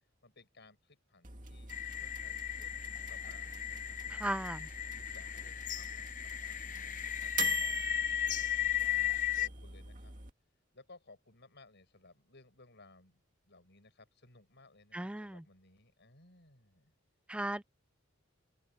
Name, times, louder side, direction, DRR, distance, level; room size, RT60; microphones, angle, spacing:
voice 1, 0.2-4.5 4.9-7.8 8.3-10.1 10.7-16.9, left 2 dB, 60° left, 8.0 m, -61 dB
sound 1, 1.2-10.3, right 5 dB, 40° right, 2.3 m, -45 dB
sound 2, 1.7-9.5, left 11 dB, 40° left, 0.8 m, -36 dB
voice 2, 4.1-4.6 14.9-15.4 17.3-17.6, right 1 dB, 5° right, 0.4 m, -36 dB
open air
head